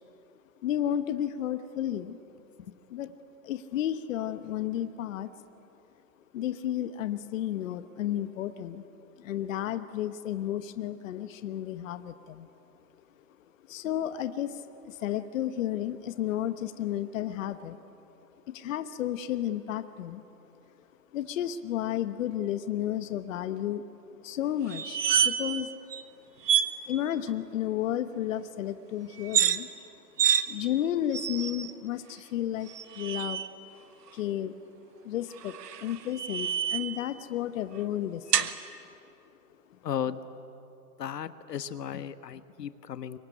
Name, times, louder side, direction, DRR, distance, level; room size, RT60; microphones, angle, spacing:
voice 1, 0.6-2.2 2.9-3.1 3.4-5.3 6.3-8.9 9.2-12.5 13.7-17.8 18.5-20.2 21.1-23.9 24.2-25.7 26.9-29.7 30.5-32.7 32.9-33.4 34.1-34.6 35.0-35.6 35.8-38.6, left 11 dB, 50° left, 11 dB, 1.2 m, -32 dB
sound 1, 24.7-25.6 25.9-26.0 26.4-26.7 29.2-29.6 30.2-30.4 31.1-31.7 32.7-33.5 35.4-37.0 38.3-38.5, right 9 dB, 75° right, 1.5 m, -27 dB
voice 2, 39.8-40.2 41.0-43.2, left 9 dB, 75° left, 12 dB, 1.3 m, -35 dB
25.5 x 23.0 x 10.0 m, 2.9 s
hypercardioid pair, 140°, 49 cm